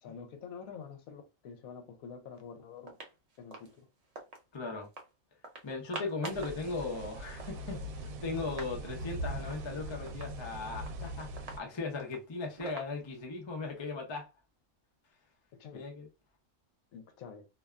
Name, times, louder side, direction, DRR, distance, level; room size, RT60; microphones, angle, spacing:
voice 1, 0.0-3.0 3.4-3.9 15.5-15.9 16.9-17.5, left 6 dB, 75° left, 1.0 m, -47 dB
sound 1, 2.3-2.4 2.8-4.4 4.8-5.1 5.4-6.6 6.9-7.0 7.2-8.8 9.1-9.2 9.4-9.7 10.1-13.4, right 2 dB, 55° right, 0.4 m, -47 dB
voice 2, 4.5-4.9 5.6-11.3 11.6-14.3 15.7-16.1, left 3 dB, 35° left, 0.4 m, -38 dB
sound 2, 6.3-11.6, right 1 dB, 75° right, 1.0 m, -41 dB
2.6 x 2.2 x 2.3 m
omnidirectional pair, 1.5 m